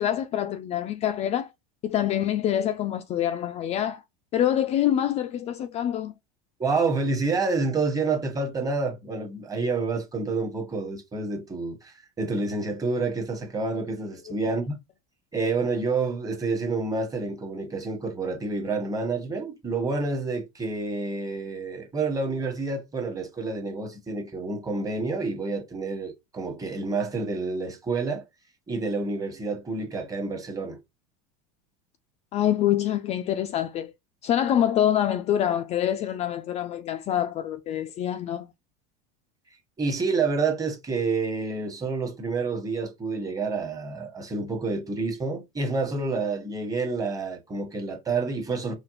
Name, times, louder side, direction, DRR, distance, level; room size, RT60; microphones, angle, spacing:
voice 1, 0.0-1.5 1.8-4.0 4.3-6.1 32.3-33.9 34.2-38.5, left 11 dB, 35° left, 0.3 m, -25 dB
voice 2, 6.6-14.8 15.3-28.3 28.7-30.8 39.8-48.8, right 3 dB, 20° right, 1.2 m, -28 dB
4.9 x 2.2 x 3.1 m
supercardioid pair, 115°, 19 cm